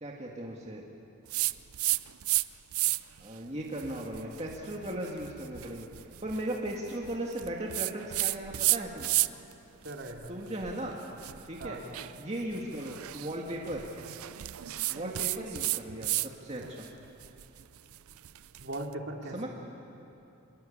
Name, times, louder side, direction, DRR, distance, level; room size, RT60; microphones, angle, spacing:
voice 1, 0.0-0.8 3.2-5.9 6.2-9.1 10.3-11.0 11.4-11.8 12.2-13.8 14.9-16.9 19.3-19.5, right 1 dB, 30° right, -2 dB, 2.0 m, -37 dB
sound 1, 1.3-2.4 2.7-3.2 3.7-9.5 9.8-16.3 16.6-18.8, right 17 dB, 85° right, 0.5 m, -33 dB
voice 2, 9.8-10.3 11.6-11.8 18.6-19.5, right 1 dB, 55° right, 1 dB, 2.8 m, -39 dB
26.0 x 21.5 x 8.7 m, 2.9 s
head